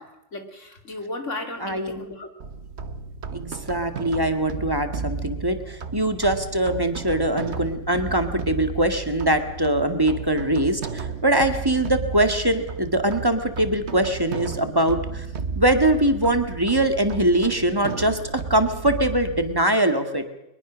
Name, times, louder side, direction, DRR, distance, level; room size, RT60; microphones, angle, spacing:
voice 1, 0.0-2.3, left 2 dB, 85° left, 6 dB, 3.1 m, -35 dB
voice 2, 1.6-2.0 3.3-15.3 15.6-20.2, right 1 dB, 20° right, 7 dB, 2.0 m, -22 dB
sound 1, 2.4-19.6, right 5 dB, 65° right, 1.5 m, -33 dB
22.5 x 21.5 x 6.4 m, 0.89 s
omnidirectional pair, 1.2 m